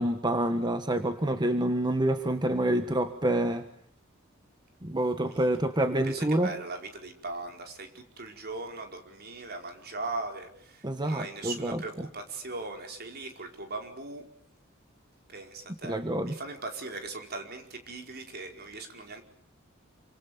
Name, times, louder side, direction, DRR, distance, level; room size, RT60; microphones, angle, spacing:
voice 1, 0.0-3.7 4.8-6.5 10.8-12.1 15.8-16.4, right 1 dB, 20° right, 8 dB, 1.4 m, -27 dB
voice 2, 6.0-14.3 15.3-16.0 16.2-19.2, right 3 dB, 50° right, 4 dB, 4.9 m, -39 dB
28.5 x 26.0 x 7.0 m, 0.66 s
head